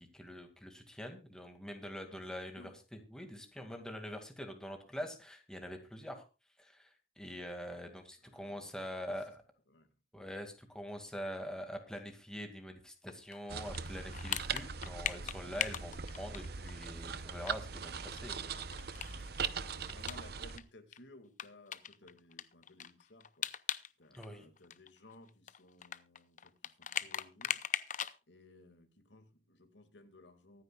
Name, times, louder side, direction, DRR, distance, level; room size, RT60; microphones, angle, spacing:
voice 1, 0.0-6.3 6.6-9.4 10.1-19.2 24.2-24.5, equal, 5° left, 4 dB, 2.2 m, -45 dB
voice 2, 2.1-2.7 3.5-3.7 8.2-9.3 9.7-10.0 19.1-23.6 24.0-27.6 28.3-30.6, left 1 dB, 85° left, 7 dB, 2.2 m, -59 dB
sound 1, 13.1-16.9 17.2-17.3 17.5-17.6 17.9-20.6 20.9-21.0 21.4-23.9 24.1-28.2, left 9 dB, 45° left, 0.7 m, -39 dB
sound 2, 13.5-20.6, right 6 dB, 60° right, 0.8 m, -41 dB
24.0 x 9.6 x 2.4 m, 0.29 s
head